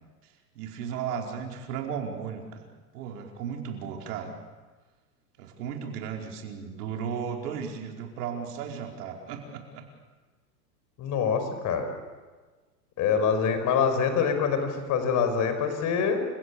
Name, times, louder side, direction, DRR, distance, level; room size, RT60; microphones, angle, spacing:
voice 1, 0.5-2.6 2.9-4.3 5.4-9.9, right 7 dB, 65° right, 1 dB, 4.9 m, -35 dB
voice 2, 11.0-11.9 13.0-16.3, left 6 dB, 35° left, 8 dB, 5.5 m, -25 dB
29.0 x 17.0 x 8.6 m, 1.3 s
hypercardioid pair, 120°, 49 cm